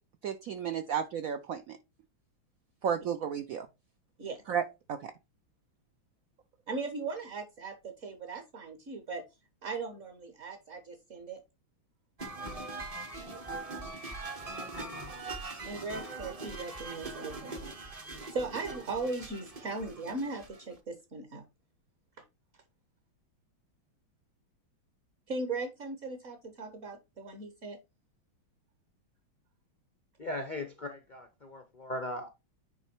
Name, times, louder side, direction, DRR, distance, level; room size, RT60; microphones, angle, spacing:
voice 1, 0.2-1.8 2.8-3.7 4.5-5.1, right 8 dB, 85° right, 0.7 m, -33 dB
voice 2, 6.7-9.2 9.6-11.4 15.6-17.5 18.3-21.4 25.3-27.8, right 3 dB, 45° right, 1.3 m, -38 dB
sound 1, 12.2-20.8, right 3 dB, 30° right, 0.7 m, -41 dB
voice 3, 30.2-32.3, left 1 dB, 80° left, 0.4 m, -38 dB
9.8 x 3.5 x 4.4 m
omnidirectional pair, 2.2 m